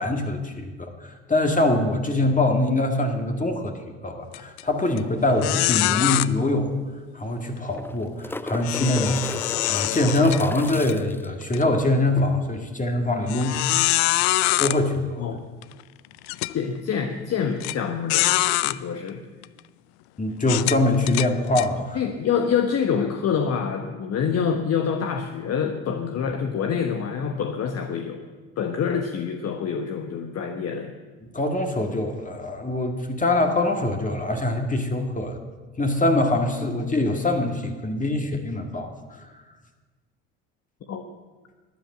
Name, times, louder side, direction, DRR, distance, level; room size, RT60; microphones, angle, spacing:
voice 1, 0.0-3.7 4.0-6.7 7.1-9.2 9.7-13.6 13.9-14.1 14.6-15.3 20.2-22.0 31.2-35.4 35.8-38.9 39.2-39.3, left 2 dB, 25° left, 4 dB, 2.0 m, -23 dB
sound 1, 4.3-4.6 5.0-5.1 5.4-6.3 8.6-10.9 11.4-11.6 12.2-12.3 13.3-14.8 15.6-15.7 16.3-16.5 17.6-17.7 18.1-18.8 19.4-19.6 20.4-21.7, left 20 dB, 80° left, 0.5 m, -24 dB
sound 2, 6.1-6.2 6.4-6.5 7.6-11.3 13.8-13.9, left 2 dB, 5° left, 0.5 m, -35 dB
voice 2, 16.5-18.3 18.6-19.2 21.9-28.2 28.6-30.9 40.9-41.1, left 7 dB, 50° left, 5 dB, 1.2 m, -26 dB
12.5 x 9.4 x 7.8 m, 1.3 s
hypercardioid pair, 65°, 32 cm